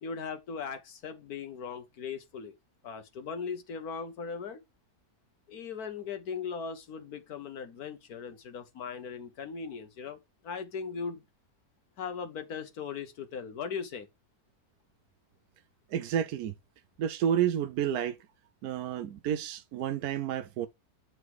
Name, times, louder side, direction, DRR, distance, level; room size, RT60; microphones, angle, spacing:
voice 1, 0.0-2.5 2.8-4.6 5.5-10.2 10.4-11.2 12.0-14.1, left 6 dB, 70° left, 1.7 m, -38 dB
voice 2, 15.9-16.5 17.0-18.2 18.6-20.7, right 9 dB, 75° right, 1.1 m, -30 dB
8.0 x 4.8 x 4.7 m
omnidirectional pair, 1.7 m